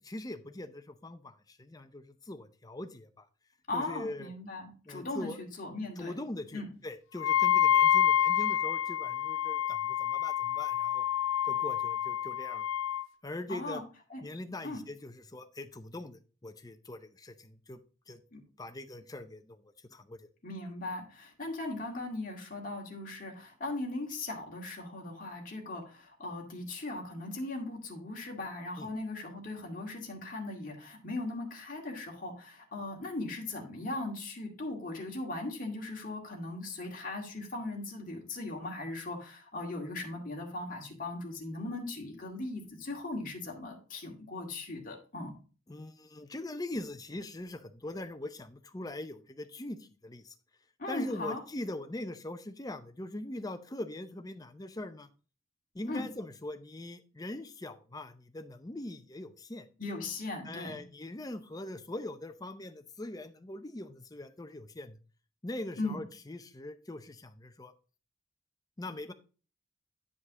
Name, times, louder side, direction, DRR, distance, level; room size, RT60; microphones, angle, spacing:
voice 1, 0.1-3.3 3.7-4.3 4.9-5.4 6.0-11.0 11.5-12.7 13.2-13.8 14.2-17.8 18.1-18.2 18.6-19.6 19.9-20.3 28.8-28.9 45.7-50.3 50.9-55.1 55.7-59.7 60.4-65.0 65.4-67.7 68.8-69.1, left 1 dB, 20° left, 9 dB, 0.6 m, -42 dB
voice 2, 3.7-6.1 6.5-6.7 13.5-13.8 14.1-14.2 14.6-14.8 18.3-18.4 20.4-45.3 50.8-51.4 55.9-56.1 59.8-60.8 65.8-66.0, left 2 dB, 40° left, 0 dB, 2.0 m, -38 dB
Wind instrument woodwind instrument, 7.2-13.1, left 10 dB, 80° left, 0.4 m, -28 dB
9.5 x 5.2 x 3.6 m, 0.36 s
head